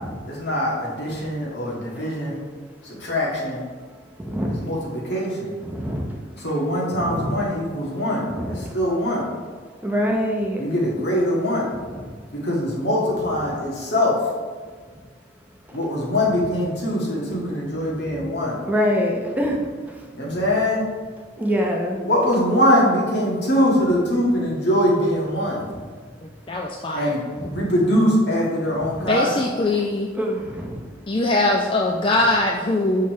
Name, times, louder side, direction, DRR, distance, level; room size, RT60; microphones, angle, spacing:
voice 1, 0.3-2.4 2.8-3.6 4.5-5.5 6.4-9.2 10.6-11.7 12.4-14.2 15.7-18.6 20.1-20.8 22.0-25.6 26.9-27.2 27.5-29.3, equal, 70° left, -4 dB, 1.7 m, -22 dB
voice 2, 4.2-4.6 5.6-6.0 7.0-7.3 8.4-8.5 9.8-10.6 18.7-19.6 21.4-22.0 30.2-30.8, equal, 10° right, -1 dB, 0.7 m, -24 dB
voice 3, 26.5-27.1 29.0-30.1 31.1-33.1, left 2 dB, 30° left, 0 dB, 0.4 m, -21 dB
6.5 x 5.6 x 3.1 m, 1.5 s
head